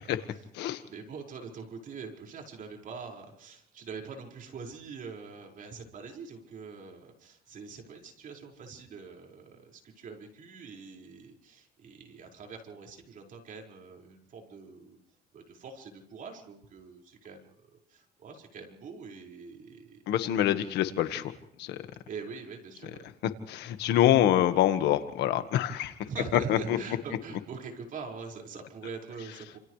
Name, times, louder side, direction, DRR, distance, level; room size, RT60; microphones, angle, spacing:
voice 1, 0.0-0.4 0.8-15.0 15.3-17.5 17.9-20.0 22.1-23.1 26.1-29.6, right 5 dB, 55° right, 1 dB, 5.4 m, -43 dB
voice 2, 20.1-21.3 21.6-21.8 23.5-25.9 26.5-26.6, left 12 dB, 80° left, 9 dB, 1.6 m, -25 dB
30.0 x 28.0 x 3.3 m, 0.67 s
cardioid pair, 110°, 17 cm